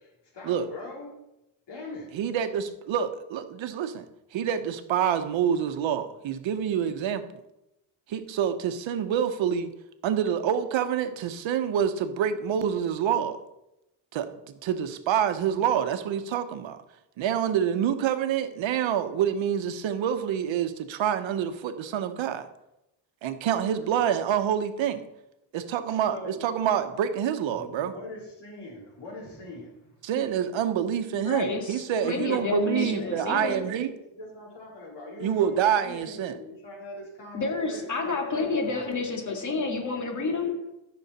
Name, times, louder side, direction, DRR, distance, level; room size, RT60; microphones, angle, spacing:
voice 1, 0.3-1.2 1.7-2.2 23.7-23.9 26.1-26.4 27.6-29.9 32.4-33.8 34.1-38.9, left 2 dB, 60° left, -2 dB, 3.9 m, -42 dB
voice 2, 2.1-4.0 4.3-7.2 8.1-9.7 10.0-13.4 14.1-16.8 17.2-22.5 23.2-25.0 25.5-27.9 30.0-33.9 35.2-36.4, right 9 dB, 80° right, 9 dB, 1.0 m, -27 dB
voice 3, 31.1-33.7 37.3-40.7, left 3 dB, 40° left, 2 dB, 2.1 m, -30 dB
14.0 x 6.4 x 4.2 m, 0.89 s
cardioid pair, 120°, 46 cm